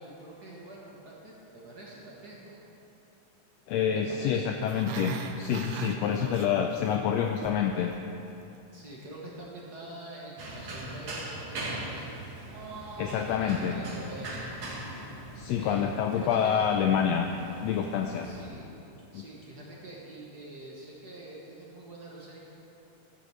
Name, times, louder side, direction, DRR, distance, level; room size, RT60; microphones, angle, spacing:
voice 1, 0.0-2.6 3.9-4.5 6.0-6.4 8.7-12.2 13.1-14.5 15.6-16.6 18.2-18.7 19.1-22.4, right 2 dB, 45° right, -4 dB, 1.4 m, -45 dB
voice 2, 3.7-7.9 13.0-13.7 15.4-17.3 17.6-18.3 19.1-19.2, left 8 dB, 85° left, 4 dB, 1.5 m, -27 dB
Growling, 4.6-6.9 7.2-7.6 7.9-8.0, right 7 dB, 80° right, 2.0 m, -37 dB
sound 1, 10.4-18.5, right 2 dB, 65° right, 2.9 m, -40 dB
13.5 x 8.1 x 4.9 m, 2.9 s
omnidirectional pair, 3.5 m